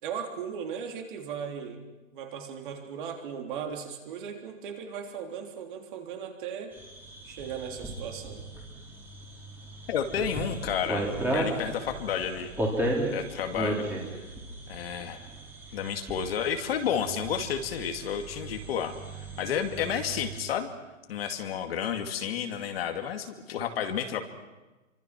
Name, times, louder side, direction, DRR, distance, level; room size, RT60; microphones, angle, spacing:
voice 1, 0.0-1.8 2.1-6.7 7.2-8.4, right 7 dB, 35° right, 2 dB, 3.6 m, -37 dB
sound 1, 6.7-20.4, right 1 dB, 5° right, 3.4 m, -35 dB
voice 2, 9.9-12.5 13.1-14.2 14.7-15.3 15.7-18.9 19.4-20.7 21.1-24.2, left 8 dB, 45° left, 5 dB, 2.4 m, -31 dB
28.5 x 25.0 x 6.1 m, 1.1 s
hypercardioid pair, 165°, 41 cm